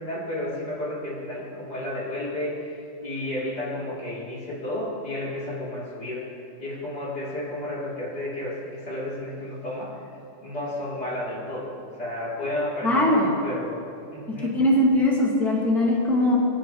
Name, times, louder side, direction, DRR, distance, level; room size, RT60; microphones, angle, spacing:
voice 1, 0.0-6.3 6.6-10.0 10.4-11.7 12.0-13.8 14.1-14.5, left 1 dB, 65° left, -8 dB, 3.8 m, -32 dB
voice 2, 12.8-13.3 14.4-16.4, left 1 dB, ahead, -4 dB, 1.7 m, -20 dB
23.5 x 9.0 x 3.1 m, 2.6 s
omnidirectional pair, 1.9 m